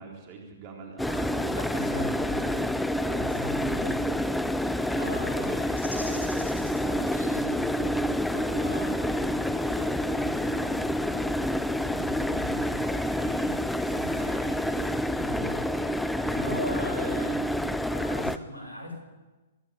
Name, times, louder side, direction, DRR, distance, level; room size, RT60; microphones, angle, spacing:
voice 1, 0.0-2.7 3.0-4.2 4.5-5.6 5.9-11.4 11.9-15.9 16.4-16.5, right 3 dB, 40° right, 0 dB, 4.2 m, -43 dB
sound 1, 1.0-18.4, left 1 dB, 5° left, 0.8 m, -28 dB
voice 2, 1.1-2.5 3.1-4.0 5.0-5.7 8.6-9.2 10.1-10.3 12.3-12.8 13.8-14.2 16.2-17.4 17.9-18.9, left 1 dB, 90° right, 2 dB, 7.3 m, -39 dB
sound 2, 4.5-16.0, left 1 dB, 80° left, 7.4 m, -51 dB
25.5 x 11.5 x 9.1 m, 1.2 s
figure-of-eight pair, 115°, 0 cm